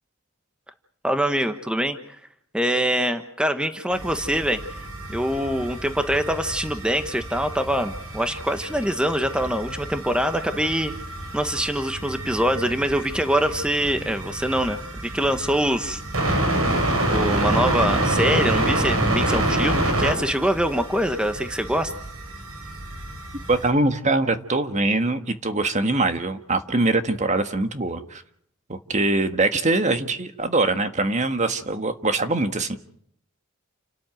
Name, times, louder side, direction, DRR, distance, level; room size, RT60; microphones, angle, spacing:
voice 1, 1.0-2.2 2.5-10.9 11.3-16.0 17.1-21.9, equal, 5° right, 8 dB, 1.1 m, -24 dB
sound 1, 3.9-23.7, right 1 dB, 80° right, 6.6 m, -28 dB
voice 2, 23.5-28.2 28.7-32.8, right 2 dB, 35° right, 8 dB, 1.6 m, -23 dB
29.5 x 13.0 x 9.1 m, 0.68 s
head